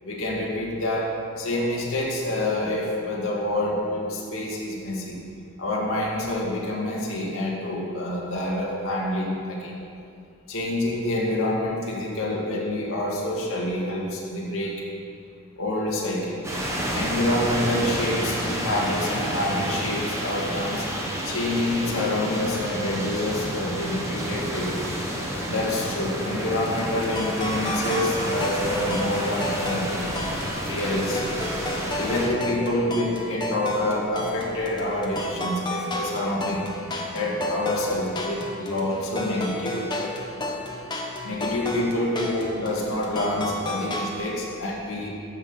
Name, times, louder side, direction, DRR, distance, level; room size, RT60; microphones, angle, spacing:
voice 1, 0.0-5.2 5.6-9.7 10.5-14.7 15.6-16.4 16.9-20.9 21.3-24.9 25.5-30.1 30.6-31.4 32.0-36.7 37.1-40.2 41.2-45.1, left 1 dB, 70° left, -5 dB, 2.0 m, -27 dB
sound 1, 16.4-32.3, equal, 15° right, 1.3 m, -30 dB
sound 2, 26.7-44.2, left 1 dB, 20° left, 1.0 m, -33 dB
13.5 x 6.1 x 5.6 m, 2.4 s
head